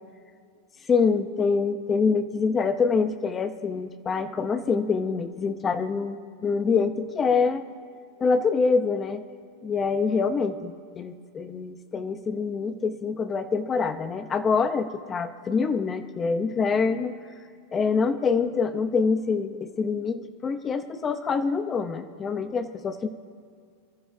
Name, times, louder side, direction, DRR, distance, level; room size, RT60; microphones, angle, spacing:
voice 1, 0.9-7.6 8.2-9.2 9.6-17.2 17.7-23.1, left 5 dB, 15° left, 9 dB, 0.8 m, -25 dB
27.0 x 14.0 x 2.8 m, 2.3 s
supercardioid pair, 160°, 0 cm